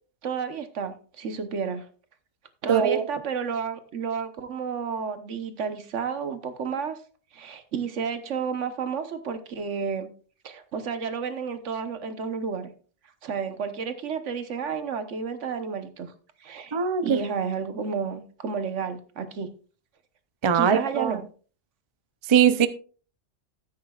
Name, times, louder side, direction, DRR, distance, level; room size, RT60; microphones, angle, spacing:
voice 1, 0.2-1.9 2.6-7.0 7.3-10.1 10.4-12.7 13.2-16.1 16.4-16.8 17.0-19.5 20.5-21.2, right 6 dB, 75° right, 1.3 m, -31 dB
voice 2, 2.7-3.1 16.7-17.2 20.4-21.2 22.3-22.7, right 8 dB, 40° right, 0.4 m, -21 dB
13.0 x 9.4 x 2.4 m
omnidirectional pair, 1.3 m